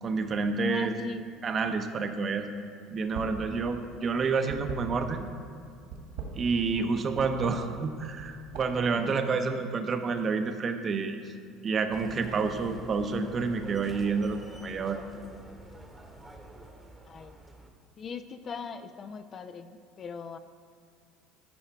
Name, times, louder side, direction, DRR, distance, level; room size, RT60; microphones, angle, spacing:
voice 1, 0.0-0.9 1.4-2.5 2.9-5.3 6.3-11.2 11.6-15.0, right 4 dB, 40° right, 7 dB, 0.7 m, -29 dB
voice 2, 0.7-1.3 8.9-9.2 17.0-17.4 18.0-20.4, left 5 dB, 40° left, 10 dB, 0.4 m, -40 dB
sound 1, 3.1-3.5 3.7-5.3 5.8-6.9 7.2-7.5 8.1-8.9, right 5 dB, 75° right, 1.7 m, -40 dB
sound 2, 11.9-17.7, right 1 dB, 10° right, 1.0 m, -47 dB
10.5 x 4.8 x 4.4 m, 2.4 s
supercardioid pair, 95°, 0 cm